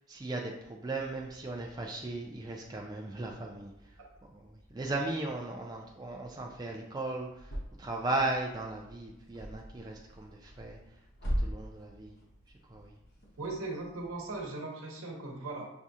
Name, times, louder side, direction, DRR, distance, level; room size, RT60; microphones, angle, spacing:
voice 1, 0.1-3.7 4.3-7.5 7.8-10.8 11.4-12.2 12.7-12.9, right 2 dB, 20° right, 0 dB, 0.3 m, -36 dB
sound 1, 2.8-14.5, equal, 50° left, 0.9 m, -43 dB
voice 2, 13.4-15.7, right 2 dB, 85° right, 0 dB, 0.9 m, -38 dB
6.0 x 2.3 x 2.7 m, 0.85 s
head